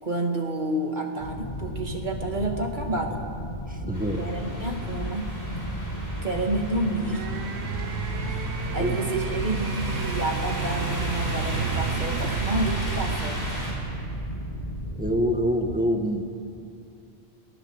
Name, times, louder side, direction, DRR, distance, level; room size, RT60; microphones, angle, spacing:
voice 1, 0.0-3.2 4.2-5.3 6.2-7.3 8.3-8.4 8.7-13.5 15.8-15.9, right 1 dB, 45° right, 2 dB, 2.5 m, -29 dB
sound 1, 1.2-15.5, equal, 40° left, 2.2 m, -34 dB
voice 2, 3.7-4.3 8.8-9.0 15.0-16.3, equal, 10° right, 3 dB, 1.9 m, -26 dB
sound 2, 3.9-13.7, equal, 75° left, 5.5 m, -37 dB
sound 3, 7.1-15.0, right 7 dB, 90° right, 1.1 m, -32 dB
30.0 x 19.0 x 8.2 m, 2.6 s
omnidirectional pair, 1.1 m